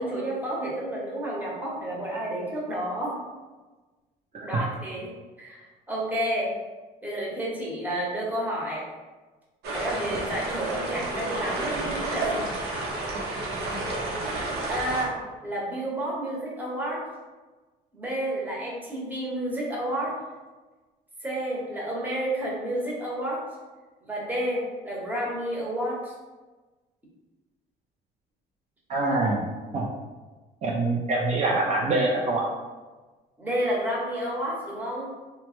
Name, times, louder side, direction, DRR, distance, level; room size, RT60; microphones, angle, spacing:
voice 1, 0.0-3.2 4.4-5.1 5.4-6.5 7.0-8.8 9.7-12.5 14.7-17.0 17.9-20.1 21.2-23.4 24.0-26.1 33.4-35.1, right 1 dB, 10° right, -4 dB, 0.9 m, -30 dB
sound 1, 9.6-15.0, right 2 dB, 75° right, 0.7 m, -30 dB
voice 2, 28.9-29.5 29.7-29.9 30.6-32.5, right 2 dB, 45° right, -3 dB, 0.4 m, -24 dB
3.0 x 2.1 x 3.0 m, 1.2 s
cardioid pair, 110°, 17 cm